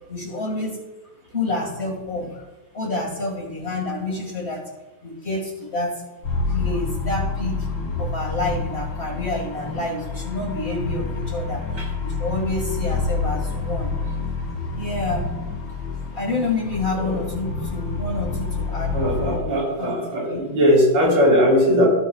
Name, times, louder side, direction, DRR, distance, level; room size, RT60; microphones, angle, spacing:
voice 1, 0.1-0.8 1.3-2.5 2.7-4.7 5.0-6.0 6.5-11.6 12.0-14.1 14.7-15.3 16.1-20.0 20.3-20.5, left 2 dB, 30° left, -1 dB, 2.2 m, -28 dB
sound 1, 6.2-19.4, left 3 dB, 90° left, 3.6 m, -28 dB
voice 2, 16.9-17.2 18.7-21.9, equal, 80° right, -3 dB, 4.5 m, -19 dB
16.5 x 7.2 x 2.4 m, 1.0 s
omnidirectional pair, 2.3 m